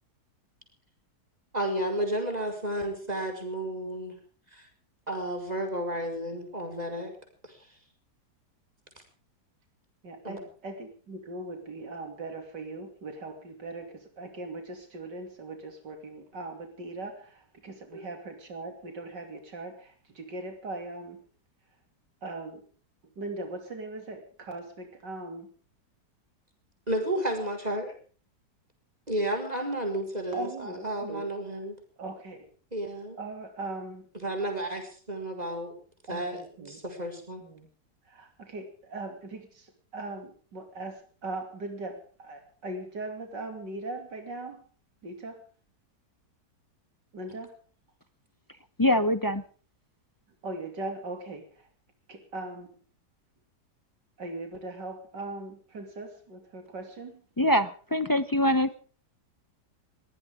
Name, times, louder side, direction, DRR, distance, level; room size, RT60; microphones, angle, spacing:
voice 1, 1.5-4.2 4.5-4.7 5.1-7.1 7.4-7.6 10.2-10.4 17.9-18.0 26.9-27.9 29.1-31.8 32.7-33.2 34.2-35.7 36.1-37.4, right 1 dB, 20° right, 4 dB, 5.4 m, -32 dB
voice 2, 10.0-21.2 22.2-22.6 23.2-25.5 30.3-31.3 32.0-32.5 33.2-34.1 36.1-36.8 37.4-37.7 38.0-44.6 45.0-45.4 47.1-47.5 50.4-51.7 52.1-52.7 54.2-57.2, right 2 dB, 80° right, 5 dB, 3.4 m, -39 dB
voice 3, 48.8-49.4 57.4-58.8, left 1 dB, 35° left, 12 dB, 0.3 m, -24 dB
21.0 x 18.0 x 3.7 m, 0.41 s
omnidirectional pair, 1.9 m